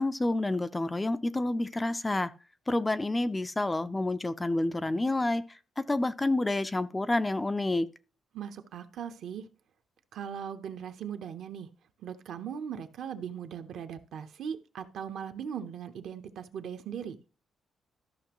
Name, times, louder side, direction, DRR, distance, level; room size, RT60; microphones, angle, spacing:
voice 1, 0.0-2.3 2.7-5.4 5.9-7.9, left 2 dB, 10° left, 0.3 m, -28 dB
voice 2, 8.3-9.4 10.1-11.7 12.0-17.2, right 8 dB, 65° right, 0.8 m, -39 dB
13.5 x 5.9 x 3.0 m
cardioid pair, 170°, 0 cm